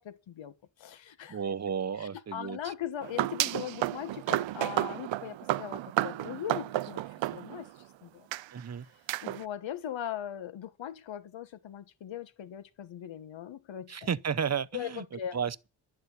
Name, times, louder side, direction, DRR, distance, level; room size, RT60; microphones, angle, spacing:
voice 1, 0.0-1.4 2.0-7.7 8.0-8.3 9.2-14.1 14.7-15.4, left 10 dB, 85° left, 1.4 m, -40 dB
voice 2, 1.3-2.7 8.5-8.9 13.9-15.0 15.3-15.7, right 7 dB, 35° right, 0.8 m, -33 dB
sound 1, 3.0-7.8 8.3-8.4 9.1-9.4, right 14 dB, 90° right, 0.6 m, -32 dB
11.5 x 6.7 x 9.6 m
cardioid pair, 75°, 44 cm